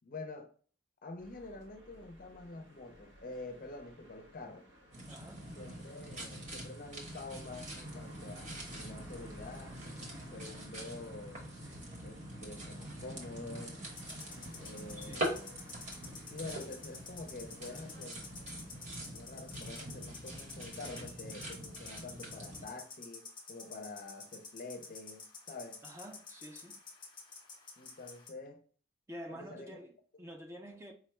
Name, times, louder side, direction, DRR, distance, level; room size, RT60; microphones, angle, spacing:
voice 1, 0.0-0.5 1.0-4.7 5.6-9.8 10.3-11.5 12.0-13.8 14.6-15.6 16.3-18.2 19.0-25.8 27.8-28.6 29.3-29.8, left 2 dB, 45° left, 0.5 m, -47 dB
sound 1, 1.2-19.1, equal, 80° right, 1.0 m, -57 dB
sound 2, 4.9-22.7, right 1 dB, 40° right, 1.0 m, -44 dB
voice 2, 5.1-5.5 14.9-15.3 25.8-26.8 29.1-30.9, equal, 15° right, 0.4 m, -48 dB
sound 3, 14.0-28.3, left 4 dB, 25° left, 0.8 m, -50 dB
4.8 x 2.2 x 3.0 m
head